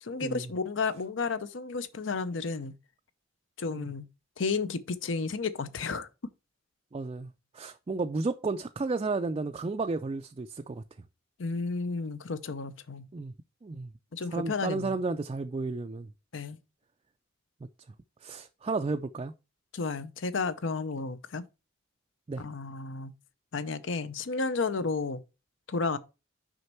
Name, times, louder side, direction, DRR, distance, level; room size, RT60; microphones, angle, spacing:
voice 1, 0.0-2.7 3.6-4.1 4.4-6.1 11.4-13.0 14.1-15.0 16.3-16.6 19.7-21.5 22.4-23.1 23.5-25.2 25.7-26.0, left 4 dB, 65° left, 0.6 m, -32 dB
voice 2, 6.9-10.8 13.1-13.3 13.6-13.9 14.3-16.1 18.2-19.3 22.3-22.4, right 3 dB, 25° right, 0.3 m, -32 dB
6.4 x 5.2 x 4.4 m
head